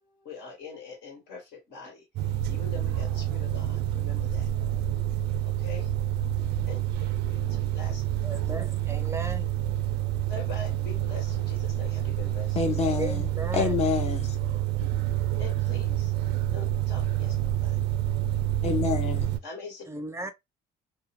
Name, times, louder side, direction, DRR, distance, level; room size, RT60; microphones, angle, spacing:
voice 1, 0.2-4.5 5.4-5.9 6.7-6.8 7.3-8.0 10.3-13.0 15.4-16.1 16.5-17.8 19.4-19.9, left 4 dB, 80° left, 1.4 m, -43 dB
Room noise, 2.2-19.4, right 12 dB, 85° right, 0.4 m, -28 dB
voice 2, 8.2-9.5 12.9-13.8 19.9-20.3, right 2 dB, 15° right, 0.4 m, -36 dB
voice 3, 12.6-13.3 13.5-14.4 18.6-19.3, left 6 dB, 40° left, 0.6 m, -27 dB
2.7 x 2.1 x 2.7 m
cardioid pair, 110°, 17 cm